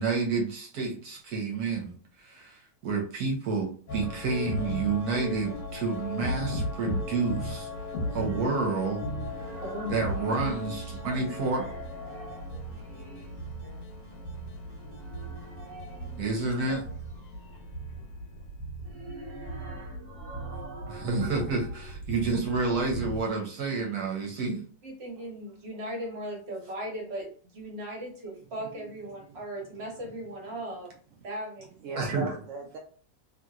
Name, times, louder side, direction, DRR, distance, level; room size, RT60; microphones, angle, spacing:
voice 1, 0.0-7.7 8.1-9.0 9.9-11.6 16.2-16.9 20.9-24.6 32.0-32.3, right 4 dB, 65° right, 0 dB, 1.2 m, -29 dB
sound 1, 3.9-23.2, left 1 dB, 80° left, 1.5 m, -37 dB
sound 2, 8.0-10.9 11.2-13.5 14.7-17.2 18.6-21.9, right 2 dB, 20° right, 0.7 m, -47 dB
voice 2, 9.6-11.0 13.6-13.8 24.8-30.9 31.2-31.7, equal, 45° right, -1 dB, 1.0 m, -38 dB
voice 3, 20.9-21.2 25.2-25.3 28.7-28.9 29.2-29.9 31.8-32.8, right 4 dB, 80° right, 0 dB, 0.6 m, -40 dB
2.9 x 2.8 x 2.4 m, 0.44 s
omnidirectional pair, 1.9 m